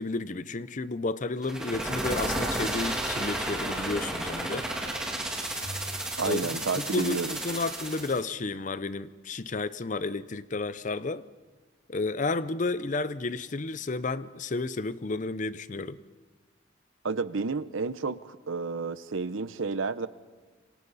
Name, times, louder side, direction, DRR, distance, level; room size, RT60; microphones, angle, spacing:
voice 1, 0.0-4.7 6.2-6.5 6.8-11.2 11.9-16.0, left 3 dB, 40° left, 15 dB, 0.6 m, -32 dB
sound 1, 1.4-8.2, right 1 dB, 5° right, 2.9 m, -32 dB
Bowed string instrument, 5.6-8.0, equal, 70° left, 3.3 m, -47 dB
voice 2, 6.2-7.4 17.0-20.1, right 4 dB, 80° right, 15 dB, 0.8 m, -31 dB
28.5 x 25.0 x 4.1 m, 1.4 s
head